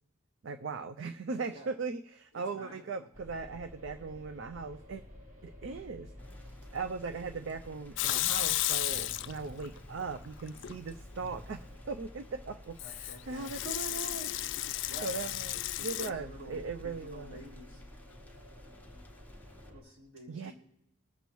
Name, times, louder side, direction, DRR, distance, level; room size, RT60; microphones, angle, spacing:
voice 1, 0.4-5.0 5.4-14.4 15.0-17.4 20.3-20.5, right 4 dB, 60° right, 9 dB, 0.4 m, -39 dB
voice 2, 2.3-2.8 12.8-13.5 14.9-15.1 15.8-17.8 19.7-20.5, right 1 dB, 80° right, -4 dB, 3.6 m, -49 dB
sound 1, 3.1-19.8, left 1 dB, 35° right, 1.5 m, -51 dB
Thunder / Rain, 6.2-19.7, left 1 dB, 10° left, 0.7 m, -57 dB
Water tap faucet / Sink (filling or washing) / Liquid, 8.0-9.7 10.0-10.8 12.8-16.1, left 15 dB, 60° left, 0.3 m, -33 dB
20.5 x 7.0 x 3.0 m, 0.79 s
head